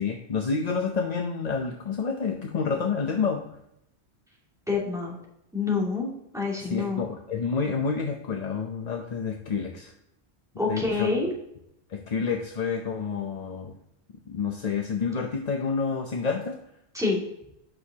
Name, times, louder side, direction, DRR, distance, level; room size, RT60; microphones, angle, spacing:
voice 1, 0.0-3.4 6.6-9.9 10.7-11.1 11.9-13.8 14.3-16.6, left 5 dB, 45° left, 3 dB, 0.7 m, -29 dB
voice 2, 4.7-5.2 5.5-6.1 6.3-7.0 10.6-11.3 16.9-17.2, left 4 dB, 5° right, -4 dB, 2.3 m, -26 dB
8.8 x 6.4 x 2.8 m, 0.80 s
omnidirectional pair, 1.2 m